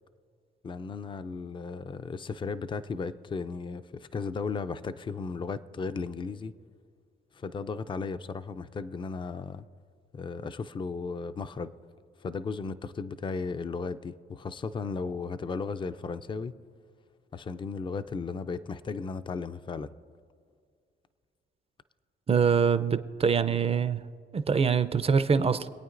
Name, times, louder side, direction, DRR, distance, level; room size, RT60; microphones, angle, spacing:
voice 1, 0.6-6.5 7.3-9.7 10.1-11.7 12.2-16.6 17.3-19.9, left 4 dB, 25° left, 12 dB, 0.4 m, -35 dB
voice 2, 22.3-24.0 24.3-25.7, right 6 dB, 30° right, 12 dB, 0.5 m, -24 dB
25.5 x 8.9 x 2.6 m, 2.2 s
cardioid pair, 90°, 20 cm